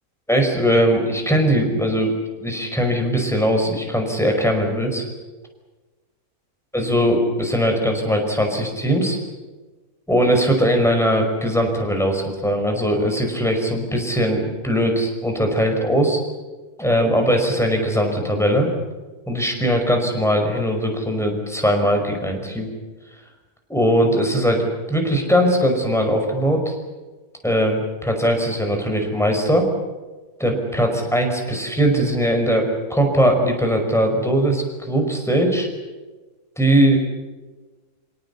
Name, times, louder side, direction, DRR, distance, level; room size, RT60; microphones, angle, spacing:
voice 1, 0.3-2.1 2.4-5.0 6.7-9.2 10.1-16.2 16.8-18.7 19.3-22.7 23.7-24.6 24.9-26.8 27.4-29.7 30.4-35.7 36.6-37.0, equal, ahead, 3 dB, 5.2 m, -20 dB
28.0 x 18.0 x 8.4 m, 1.2 s
omnidirectional pair, 1.6 m